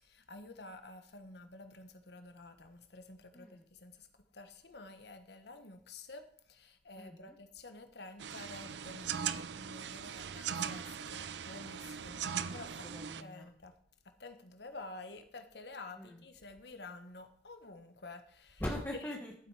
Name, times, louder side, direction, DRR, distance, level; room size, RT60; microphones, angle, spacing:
voice 1, 0.0-4.1 4.3-12.3 12.5-12.7 13.2-13.7 14.2-18.6, left 2 dB, 70° left, 8 dB, 1.4 m, -50 dB
voice 2, 3.3-3.6 6.9-7.4 12.3-13.6 15.9-16.2 18.6-19.3, left 1 dB, 10° left, -1 dB, 1.4 m, -42 dB
sound 1, 8.2-13.2, right 8 dB, 80° right, 0.6 m, -40 dB
12.5 x 7.9 x 5.0 m, 0.63 s
head